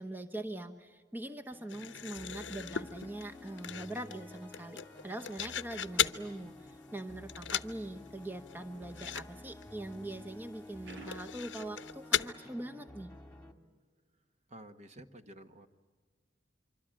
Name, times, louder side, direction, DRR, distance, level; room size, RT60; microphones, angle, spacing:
voice 1, 0.0-4.8 5.0-13.1, right 1 dB, 10° right, 6 dB, 0.9 m, -42 dB
sound 1, 1.5-13.5, left 1 dB, 5° left, 1.9 m, -52 dB
sound 2, 1.7-6.2 6.7-7.0 7.3-7.8 8.0-8.1 8.5-8.6 8.9-9.3 9.5-9.6 10.1-10.2 10.9-12.3, left 9 dB, 80° left, 0.8 m, -36 dB
sound 3, 10.8-12.4, right 3 dB, 80° right, 6.0 m, -54 dB
voice 2, 14.5-15.7, right 1 dB, 40° right, 9 dB, 1.3 m, -51 dB
25.5 x 25.0 x 8.9 m, 1.5 s
head